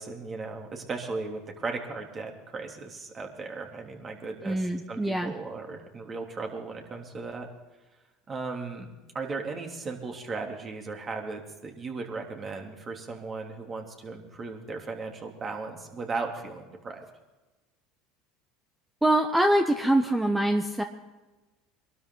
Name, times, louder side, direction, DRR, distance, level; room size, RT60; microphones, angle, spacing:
voice 1, 0.0-4.6 4.9-7.5 8.3-8.9 9.1-17.0, right 4 dB, 35° right, 2 dB, 3.1 m, -36 dB
voice 2, 4.4-5.3 19.0-20.8, right 1 dB, 10° right, 5 dB, 1.2 m, -24 dB
23.0 x 12.5 x 3.9 m, 1.2 s
hypercardioid pair, 90°, 0 cm